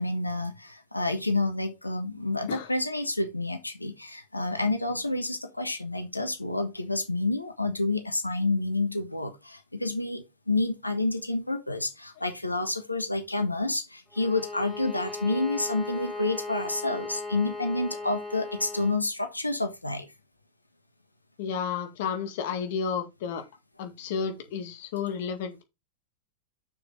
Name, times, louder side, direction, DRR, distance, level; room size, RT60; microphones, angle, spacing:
voice 1, 0.0-20.1, left 2 dB, 85° left, 1.4 m, -29 dB
Bowed string instrument, 14.1-19.1, left 3 dB, ahead, 1.9 m, -38 dB
voice 2, 21.4-23.4 23.8-25.6, left 6 dB, 50° left, 2.0 m, -32 dB
7.0 x 6.6 x 3.9 m
figure-of-eight pair, 90°, 0 cm